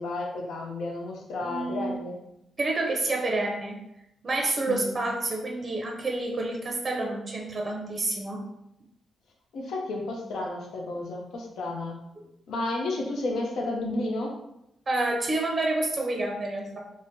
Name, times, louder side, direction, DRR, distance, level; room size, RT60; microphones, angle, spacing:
voice 1, 0.0-2.2 4.7-4.8 9.5-12.0 12.5-14.4, left 2 dB, 80° left, 1 dB, 0.5 m, -32 dB
voice 2, 1.4-1.9 2.6-3.8 4.2-8.4 14.9-16.8, right 2 dB, 35° right, 0 dB, 0.5 m, -28 dB
2.6 x 2.0 x 3.5 m, 0.85 s
cardioid pair, 105°, 0 cm